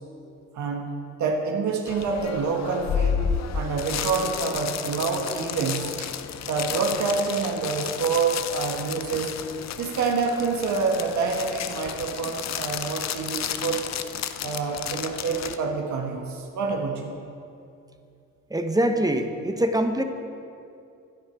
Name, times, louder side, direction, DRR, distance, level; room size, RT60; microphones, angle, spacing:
voice 1, 0.5-6.1 6.5-9.4 9.8-13.8 14.4-17.2, right 4 dB, 70° right, 1 dB, 1.7 m, -27 dB
sound 1, 1.9-15.6, left 8 dB, 60° left, 0.8 m, -32 dB
voice 2, 18.5-20.0, right 1 dB, 10° right, 6 dB, 1.2 m, -23 dB
11.0 x 10.5 x 8.4 m, 2.5 s
cardioid pair, 90°, 30 cm